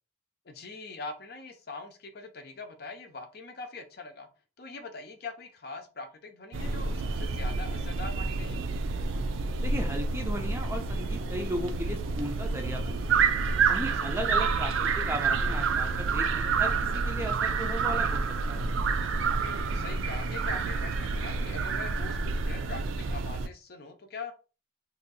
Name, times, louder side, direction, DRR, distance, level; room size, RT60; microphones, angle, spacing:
voice 1, 0.4-4.3 4.6-8.6 14.0-14.3 19.3-24.3, left 3 dB, 55° left, 6 dB, 0.6 m, -42 dB
sound 1, 6.5-23.5, right 4 dB, 85° right, 0.4 m, -29 dB
voice 2, 9.6-13.3 13.7-18.2 18.5-18.7, right 1 dB, 15° right, 3 dB, 0.5 m, -36 dB
2.7 x 2.6 x 4.0 m, 0.34 s
head